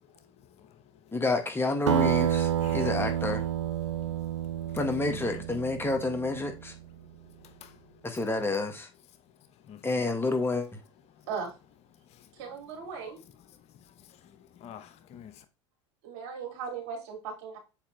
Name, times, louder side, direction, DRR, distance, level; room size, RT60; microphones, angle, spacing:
voice 1, 0.0-1.2 2.6-3.0 3.9-4.8 5.1-5.4 7.0-8.2 9.3-9.9 11.1-11.3 12.0-12.3 13.5-15.4, left 9 dB, 45° left, 1.0 m, -51 dB
voice 2, 1.1-3.4 4.7-6.7 8.0-8.9 9.8-10.8, left 3 dB, 15° left, 1.6 m, -29 dB
Acoustic guitar, 1.9-6.7, right 10 dB, 80° right, 0.7 m, -29 dB
voice 3, 12.3-13.2 16.0-17.6, right 6 dB, 60° right, 3.1 m, -37 dB
7.3 x 5.1 x 3.3 m
hypercardioid pair, 80°, 15 cm